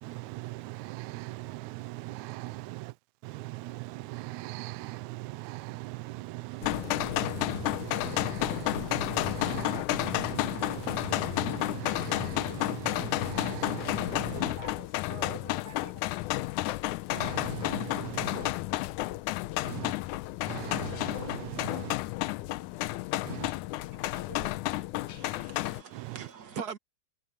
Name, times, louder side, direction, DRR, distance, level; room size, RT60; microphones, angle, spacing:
voice 1, 0.0-3.0 3.2-14.6 17.1-18.5 19.6-20.0 20.5-22.0 23.2-23.5 25.9-26.3, right 20 dB, 80° right, 1.7 m, -40 dB
sound 1, 6.6-25.8, left 17 dB, 80° left, 1.9 m, -31 dB
voice 2, 14.3-16.0 23.3-23.4 23.9-24.6, right 7 dB, 65° right, 5.3 m, -48 dB
voice 3, 25.1-26.8, right 6 dB, 40° right, 1.5 m, -41 dB
omnidirectional pair, 3.9 m